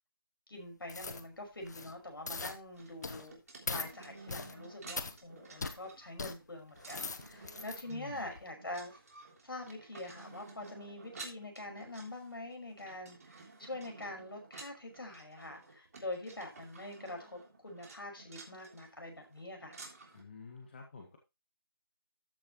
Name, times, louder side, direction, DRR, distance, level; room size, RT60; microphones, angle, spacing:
voice 1, 0.5-3.4 3.7-9.0 9.4-19.8, left 1 dB, 70° left, 5.7 m, -45 dB
sound 1, 0.9-1.2 1.6-1.9 2.3-2.6 3.0-3.3 3.7-3.9 4.3-4.5 5.0-5.1 5.6-5.8 6.2-6.3 6.8-7.8 8.3-8.4, left 4 dB, 50° left, 1.2 m, -40 dB
sound 2, 2.7-20.2, right 3 dB, 40° right, 3.3 m, -53 dB
voice 2, 7.9-8.3 20.1-21.2, left 5 dB, 30° left, 2.0 m, -49 dB
13.5 x 7.2 x 3.1 m
figure-of-eight pair, 165°, 12 cm